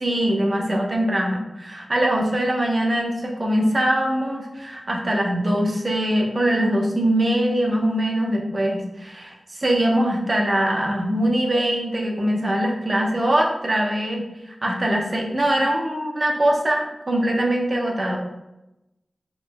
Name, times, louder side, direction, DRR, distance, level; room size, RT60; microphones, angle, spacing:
voice 1, 0.0-18.2, right 1 dB, 50° right, 0 dB, 0.9 m, -22 dB
4.5 x 4.4 x 2.2 m, 0.93 s
cardioid pair, 50°, 0 cm